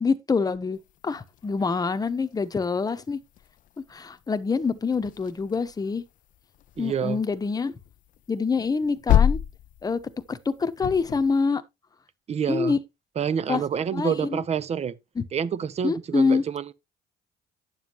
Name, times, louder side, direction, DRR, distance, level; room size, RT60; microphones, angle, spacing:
voice 1, 0.0-3.2 3.9-6.0 6.8-7.7 8.3-9.4 9.8-10.0 10.3-11.6 12.5-12.8 13.5-13.6 13.9-14.4 15.2-15.3 15.8-16.4, left 5 dB, 20° left, 1.0 m, -26 dB
sound 1, 0.8-11.4, left 10 dB, 55° left, 0.4 m, -30 dB
voice 2, 6.8-7.2 12.3-12.7 13.2-14.9 15.3-16.7, right 7 dB, 40° right, 0.8 m, -27 dB
11.0 x 7.3 x 3.0 m
cardioid pair, 110°, 17 cm